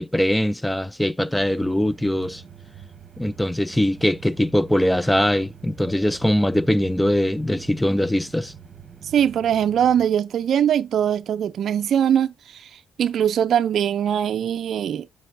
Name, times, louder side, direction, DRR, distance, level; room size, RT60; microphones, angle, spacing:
voice 1, 0.0-2.4 3.2-8.5, left 1 dB, 5° left, 0.4 m, -21 dB
sound 1, 1.3-10.1, right 7 dB, 40° right, 1.1 m, -45 dB
voice 2, 9.0-15.1, right 9 dB, 65° right, 0.4 m, -22 dB
7.7 x 5.3 x 2.5 m
cardioid pair, 90°, 0 cm